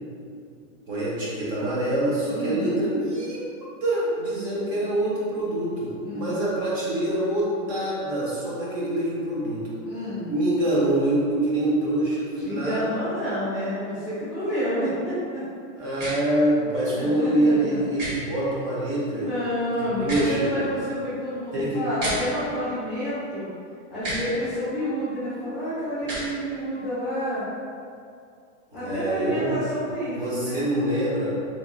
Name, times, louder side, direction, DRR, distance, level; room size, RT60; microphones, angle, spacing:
voice 1, 0.9-3.4 3.8-9.7 10.3-12.8 15.8-19.3 19.8-20.7 21.5-21.9 28.7-29.5 30.1-31.4, right 1 dB, 40° right, -7 dB, 0.7 m, -25 dB
voice 2, 2.3-2.8 6.0-6.3 9.8-10.3 12.4-15.4 17.0-17.3 19.2-23.5 23.9-27.4 28.7-30.6, equal, ahead, -15 dB, 0.6 m, -29 dB
sound 1, 16.0-16.1 18.0-18.1 20.0-20.3 22.0-22.2 24.0-24.2 26.0-26.3, right 1 dB, 65° right, 1.2 m, -30 dB
3.0 x 2.5 x 2.5 m, 2.4 s
supercardioid pair, 170°, 39 cm